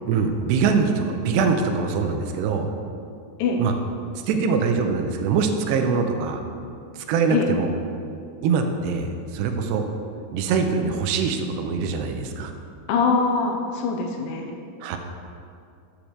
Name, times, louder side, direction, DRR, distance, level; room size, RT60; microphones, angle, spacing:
voice 1, 0.1-2.7 3.6-3.7 4.2-6.4 7.0-7.7 8.4-9.9 10.3-12.5 14.8-15.0, right 5 dB, 85° right, 5 dB, 2.8 m, -23 dB
voice 2, 12.9-14.6, left 4 dB, 90° left, 2 dB, 1.9 m, -23 dB
8.9 x 5.0 x 6.7 m, 2.4 s
omnidirectional pair, 4.9 m